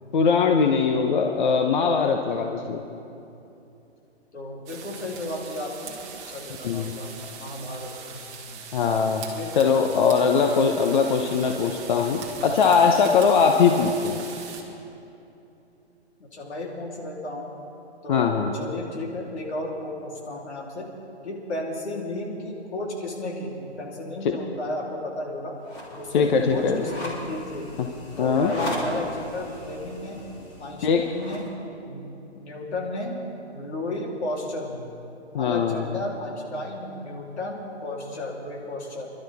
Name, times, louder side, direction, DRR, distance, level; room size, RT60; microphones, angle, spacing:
voice 1, 0.1-2.8 6.6-6.9 8.7-9.2 9.6-14.2 18.1-18.5 26.1-26.8 28.2-28.5 30.8-31.0 35.3-35.8, left 5 dB, 45° left, 3 dB, 0.9 m, -21 dB
voice 2, 4.3-5.9 6.3-8.6 9.3-9.6 16.2-17.5 18.0-20.9 21.2-25.5 25.9-27.7 28.2-30.2 30.6-31.5 31.8-32.1 32.3-33.2 33.5-34.9 35.3-39.1, left 1 dB, 75° left, -2 dB, 3.4 m, -33 dB
sound 1, 4.7-14.6, right 6 dB, 20° right, 1.4 m, -40 dB
sound 2, 25.6-31.5, left 1 dB, 30° left, 2.8 m, -37 dB
26.5 x 12.0 x 3.5 m, 2.8 s
hypercardioid pair, 160°, 33 cm